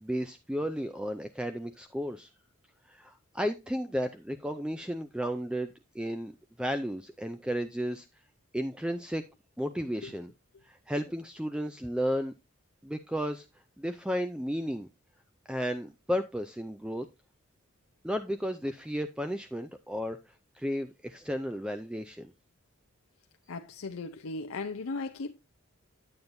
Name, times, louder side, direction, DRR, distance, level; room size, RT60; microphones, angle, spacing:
voice 1, 0.0-2.3 2.9-6.3 6.6-8.1 8.5-9.2 9.6-10.3 10.6-12.3 12.8-13.5 13.8-14.9 15.5-17.1 18.0-22.3, equal, 5° right, 0.4 m, -33 dB
voice 2, 23.5-25.3, left 3 dB, 80° left, 0.6 m, -37 dB
9.5 x 8.8 x 2.6 m
head